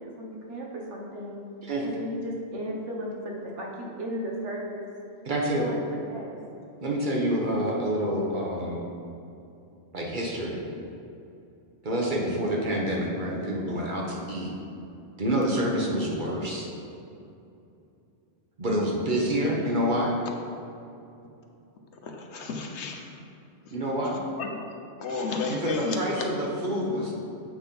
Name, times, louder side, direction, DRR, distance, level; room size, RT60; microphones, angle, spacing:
voice 1, 0.0-1.4 1.8-4.9 5.6-6.4, equal, 70° right, -2 dB, 1.4 m, -35 dB
voice 2, 5.2-5.6 6.8-8.8 9.9-10.6 11.8-14.5 15.2-16.7 18.6-20.1 23.7-24.2 25.6-27.1, equal, 40° right, -2 dB, 1.2 m, -27 dB
voice 3, 22.0-23.2 24.4-24.6 25.0-26.2, left 4 dB, 65° left, 2 dB, 1.0 m, -32 dB
7.4 x 4.3 x 5.3 m, 2.7 s
omnidirectional pair, 1.3 m